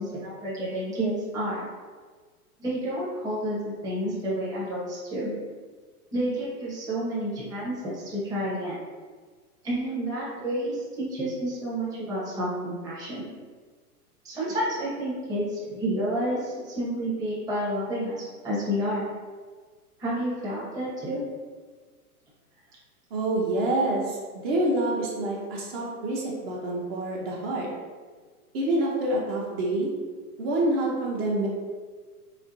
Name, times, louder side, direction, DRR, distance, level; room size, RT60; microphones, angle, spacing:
voice 1, 0.0-1.7 2.6-5.3 6.1-8.7 9.6-13.3 14.2-19.1 20.0-21.2, right 1 dB, 10° right, -8 dB, 0.7 m, -30 dB
voice 2, 23.1-24.2 24.4-27.7 28.5-29.9 30.4-31.5, right 1 dB, 40° right, -3 dB, 0.7 m, -27 dB
4.3 x 2.5 x 2.6 m, 1.5 s
hypercardioid pair, 130°, 46 cm